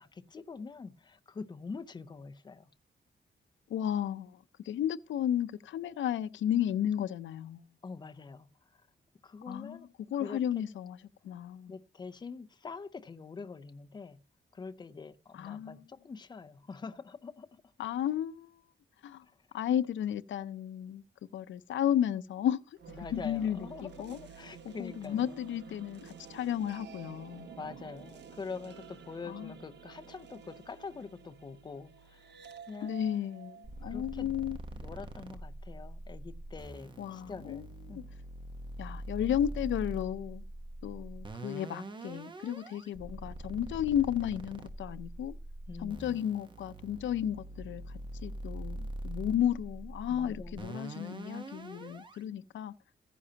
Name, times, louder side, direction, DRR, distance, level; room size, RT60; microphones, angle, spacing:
voice 1, 0.0-2.7 7.8-8.8 9.2-9.9 10.2-10.6 11.7-14.2 14.5-17.6 19.2-19.3 23.0-25.4 27.6-32.3 32.7-32.9 33.8-34.3 34.7-38.1 45.7-46.3 50.1-50.8, left 4 dB, 25° left, 0.5 m, -45 dB
voice 2, 3.7-4.3 4.6-7.6 9.5-9.8 10.1-11.0 11.2-11.7 15.3-15.8 17.8-18.5 19.0-19.2 19.5-21.0 21.3-22.6 23.1-24.2 24.7-27.5 29.3-29.5 32.8-34.6 37.0-37.6 37.9-38.0 38.8-40.4 40.8-45.4 45.8-47.8 48.2-52.7, left 10 dB, 80° left, 0.5 m, -33 dB
sound 1, 22.8-34.9, right 6 dB, 65° right, 1.1 m, -51 dB
sound 2, 33.6-52.2, right 1 dB, 25° right, 1.0 m, -43 dB
15.0 x 10.0 x 2.8 m
wide cardioid pair, 175°, 19 cm